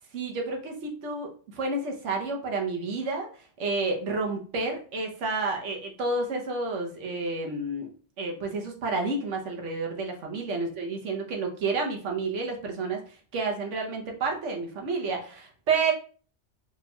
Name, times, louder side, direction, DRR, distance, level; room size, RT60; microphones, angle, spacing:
voice 1, 0.1-3.3 3.6-7.9 8.2-15.9, right 3 dB, 90° right, 2 dB, 1.2 m, -30 dB
4.2 x 3.5 x 2.2 m, 0.41 s
omnidirectional pair, 1.2 m